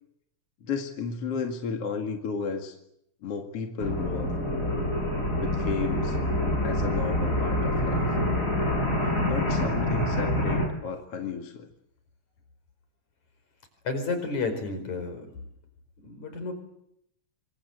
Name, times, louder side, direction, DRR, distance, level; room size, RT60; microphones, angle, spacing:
voice 1, 0.6-2.8 3.2-4.3 5.4-6.2 6.6-8.2 9.0-11.7, left 5 dB, 55° left, 3 dB, 2.9 m, -33 dB
sound 1, 3.8-10.7, left 1 dB, 25° left, 6.1 m, -26 dB
voice 2, 13.8-15.3 16.0-16.5, left 3 dB, 70° left, 8 dB, 6.3 m, -31 dB
27.0 x 25.0 x 8.1 m, 0.76 s
omnidirectional pair, 3.5 m